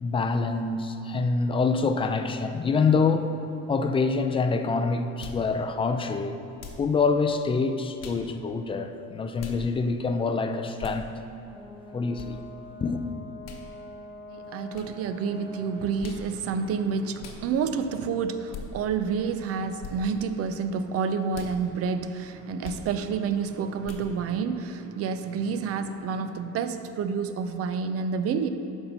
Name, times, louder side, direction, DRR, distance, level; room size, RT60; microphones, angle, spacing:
voice 1, 0.0-3.3 3.7-6.4 6.8-11.1 11.9-12.4 12.8-13.0, left 4 dB, 20° left, 7 dB, 0.4 m, -26 dB
sound 1, 5.2-5.5 6.6-6.9 8.0-8.2 9.4-9.6 10.8-11.0 12.2-12.3 13.4-13.6 14.7-14.9 16.0-16.3 17.2-17.4 18.5-18.7 19.8-20.0 21.3-21.5 22.6-22.9 23.8-24.1, left 5 dB, 60° left, 1.0 m, -40 dB
Brass instrument, 11.5-16.0, left 2 dB, 10° right, 0.9 m, -44 dB
voice 2, 14.3-28.5, right 5 dB, 50° right, 9 dB, 0.6 m, -29 dB
11.0 x 4.4 x 5.5 m, 2.8 s
cardioid pair, 140°, 29 cm